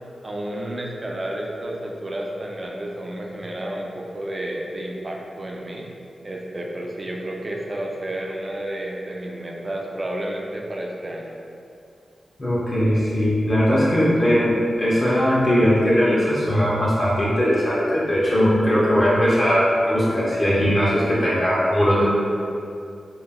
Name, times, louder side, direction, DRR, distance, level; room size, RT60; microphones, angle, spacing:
voice 1, 0.2-5.9 6.2-11.3, right 1 dB, 35° right, -1 dB, 0.4 m, -31 dB
voice 2, 12.4-22.0, equal, 40° left, -9 dB, 0.5 m, -19 dB
2.2 x 2.1 x 3.4 m, 2.5 s
cardioid pair, 75°, 0 cm